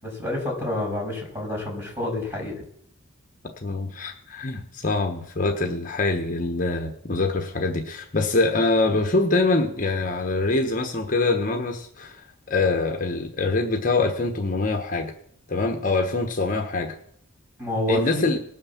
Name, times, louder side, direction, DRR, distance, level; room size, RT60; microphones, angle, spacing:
voice 1, 0.0-2.5 17.6-18.3, left 1 dB, 15° right, -1 dB, 6.6 m, -28 dB
voice 2, 3.6-12.2 12.5-15.1 15.5-16.9 17.9-18.4, left 3 dB, 40° left, 4 dB, 1.2 m, -24 dB
19.0 x 6.5 x 7.3 m, 0.69 s
head